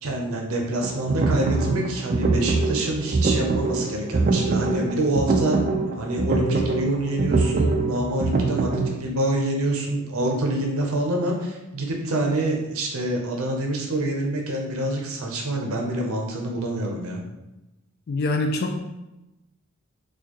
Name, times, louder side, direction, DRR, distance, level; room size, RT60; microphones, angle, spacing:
voice 1, 0.0-5.6 6.0-17.2, right 1 dB, 70° right, 1 dB, 0.6 m, -26 dB
sound 1, 0.8-8.9, right 3 dB, 35° right, 0.3 m, -23 dB
voice 2, 18.1-18.8, left 2 dB, 45° left, 3 dB, 0.3 m, -24 dB
4.4 x 2.3 x 2.9 m, 0.98 s
head